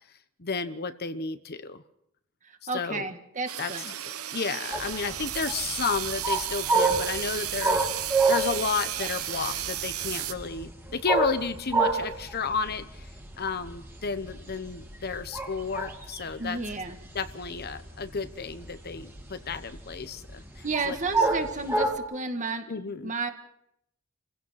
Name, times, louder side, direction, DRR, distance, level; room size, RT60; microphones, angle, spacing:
voice 1, 0.4-1.8 2.7-3.1 3.6-3.7 4.3-13.1 13.4-16.6 17.1-21.0 22.7-23.1, left 5 dB, 45° left, 11 dB, 1.0 m, -32 dB
voice 2, 2.4-3.9 16.4-17.0 20.6-23.3, right 3 dB, 35° right, 6 dB, 1.8 m, -32 dB
sound 1, 3.5-10.3, right 12 dB, 85° right, 1.1 m, -34 dB
sound 2, 4.7-22.0, right 3 dB, 10° right, 2.4 m, -28 dB
28.5 x 16.0 x 5.9 m, 0.76 s
head